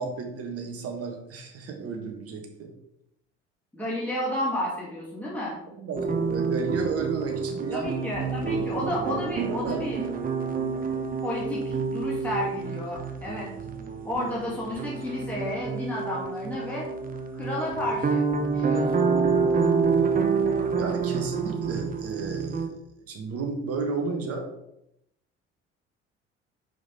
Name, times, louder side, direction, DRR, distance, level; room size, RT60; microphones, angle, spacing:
voice 1, 0.0-2.7 5.7-7.9 8.4-9.8 20.7-22.8 23.1-24.5, right 4 dB, 45° right, 3 dB, 1.4 m, -33 dB
voice 2, 3.7-5.5 7.7-10.0 11.2-13.5 14.0-16.9 17.3-18.3 18.5-19.1, left 1 dB, 5° left, -6 dB, 2.0 m, -31 dB
sound 1, 6.0-22.7, right 5 dB, 25° right, 0.9 m, -28 dB
5.3 x 4.9 x 3.9 m, 0.80 s
figure-of-eight pair, 55°, 32 cm